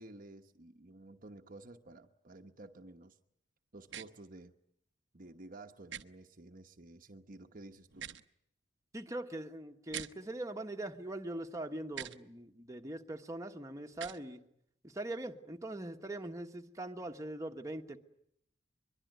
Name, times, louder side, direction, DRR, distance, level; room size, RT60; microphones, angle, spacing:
voice 1, 0.0-3.2 3.7-4.5 5.1-8.1, right 2 dB, 50° right, 6 dB, 1.1 m, -52 dB
sound 1, 3.9-4.1 5.9-6.0 7.9-8.2 9.9-10.1 11.9-12.2 13.9-14.2, right 10 dB, 75° right, 1.0 m, -43 dB
voice 2, 8.9-14.4 14.8-18.0, right 1 dB, 20° right, 4 dB, 1.4 m, -42 dB
23.5 x 23.0 x 9.3 m, 0.73 s
head